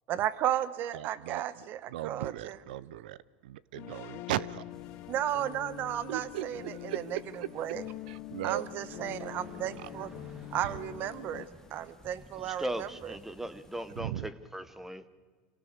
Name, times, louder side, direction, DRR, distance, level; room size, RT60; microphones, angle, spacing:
voice 1, 0.1-2.6 5.1-7.0 7.6-7.8 8.4-10.1 10.5-12.9, right 11 dB, 45° right, 1.1 m, -34 dB
voice 2, 0.9-4.6 6.1-7.5 8.1-8.7 9.8-9.9 10.6-10.8 14.0-14.3, right 13 dB, 80° right, 0.7 m, -38 dB
sound 1, 3.8-11.5, left 16 dB, 50° left, 0.9 m, -45 dB
sound 2, 4.7-14.0, left 3 dB, 10° left, 1.4 m, -56 dB
Fixed-wing aircraft airplane, 6.0-13.3, right 3 dB, 20° right, 2.6 m, -56 dB
voice 3, 12.3-15.1, right 1 dB, 5° right, 0.9 m, -38 dB
27.0 x 17.5 x 6.7 m
supercardioid pair, 120°, 5 cm